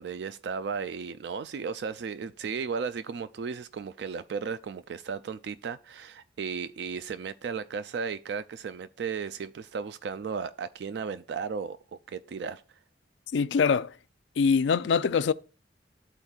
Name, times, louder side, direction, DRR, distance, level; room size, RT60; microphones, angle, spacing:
voice 1, 0.0-11.8 12.1-12.8, right 5 dB, 65° right, 0.3 m, -35 dB
voice 2, 13.3-13.9 14.4-15.3, left 5 dB, 80° left, 0.4 m, -23 dB
13.0 x 4.4 x 2.3 m
head